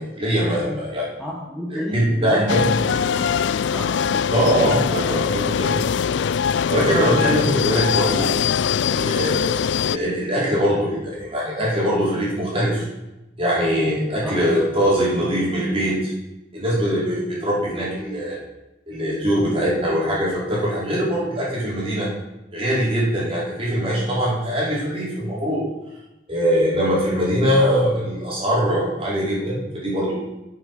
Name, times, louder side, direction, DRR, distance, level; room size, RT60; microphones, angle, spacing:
voice 1, 0.0-1.1 1.7-2.6 4.3-5.8 6.7-8.3 8.9-9.6 9.8-12.9 13.4-16.1 16.5-18.4 18.9-22.1 22.5-25.6 26.3-30.2, equal, 30° right, -6 dB, 5.0 m, -22 dB
voice 2, 1.2-3.3 3.7-4.2 4.5-4.8 14.2-14.5 19.5-19.6, equal, ahead, -5 dB, 1.8 m, -31 dB
sound 1, 2.5-10.0, left 7 dB, 70° left, 0.3 m, -22 dB
10.5 x 8.4 x 5.8 m, 0.97 s
head